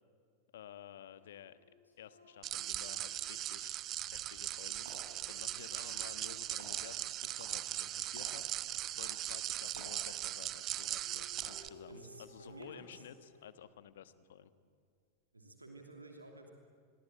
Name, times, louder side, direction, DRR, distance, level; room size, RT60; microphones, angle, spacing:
voice 1, 0.5-1.6 2.0-3.9 4.1-8.5 8.9-14.5, left 10 dB, 60° left, 14 dB, 1.3 m, -53 dB
sound 1, 1.1-7.3 10.5-10.6 10.8-14.0, left 2 dB, 80° left, 6.1 m, -63 dB
sound 2, 2.4-11.7, right 13 dB, 35° right, 0.9 m, -39 dB
sound 3, 3.9-12.6, right 3 dB, 65° right, 4.8 m, -58 dB
voice 2, 11.9-13.0 15.3-16.5, right 2 dB, 80° right, 4 dB, 2.9 m, -52 dB
30.0 x 22.5 x 8.9 m, 2.2 s
figure-of-eight pair, 90°, 0 cm